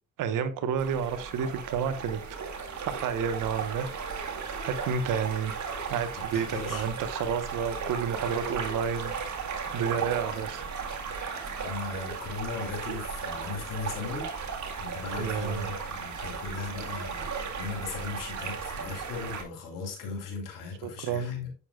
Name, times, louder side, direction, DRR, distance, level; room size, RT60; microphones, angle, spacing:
voice 1, 0.2-2.2 2.9-3.9 4.6-5.5 5.9-10.7 15.2-15.7 20.8-21.5, right 7 dB, 80° right, 1.1 m, -30 dB
sound 1, 0.8-19.4, right 5 dB, 60° right, 2.1 m, -36 dB
voice 2, 6.3-6.9 11.6-14.3 14.7-21.5, left 4 dB, 85° left, 3.2 m, -37 dB
8.6 x 6.8 x 2.3 m
supercardioid pair, 55°, 32 cm